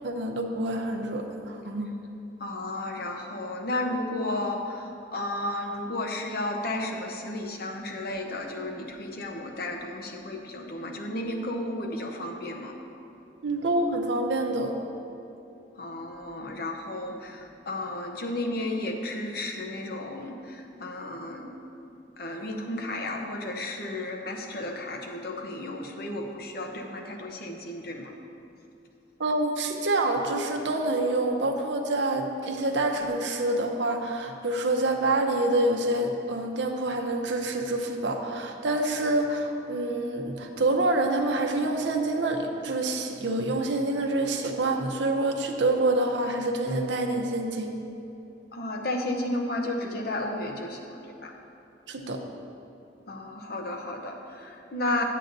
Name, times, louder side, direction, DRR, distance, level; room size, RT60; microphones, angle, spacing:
voice 1, 0.0-1.9 13.4-14.8 29.2-47.8 51.9-52.2, right 2 dB, 90° right, 3 dB, 0.7 m, -27 dB
voice 2, 2.4-12.8 15.8-21.6 22.2-28.1 48.5-51.3 53.1-55.0, left 1 dB, 60° left, 2 dB, 0.8 m, -33 dB
10.0 x 8.4 x 2.6 m, 2.7 s
head